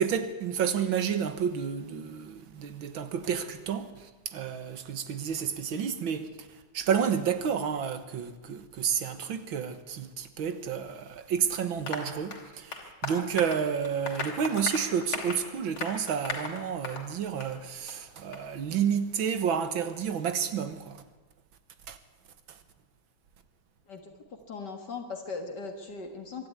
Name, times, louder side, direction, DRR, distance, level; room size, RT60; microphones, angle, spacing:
voice 1, 0.0-21.0 21.9-22.0 22.5-22.6, right 7 dB, 75° right, 2.1 m, -30 dB
Applause, 11.9-17.1 17.4-17.5 17.9-18.0 18.3-18.4, left 3 dB, 85° left, 3.7 m, -37 dB
voice 2, 24.5-26.5, left 4 dB, 55° left, 2.3 m, -38 dB
23.5 x 12.5 x 9.6 m
omnidirectional pair, 2.2 m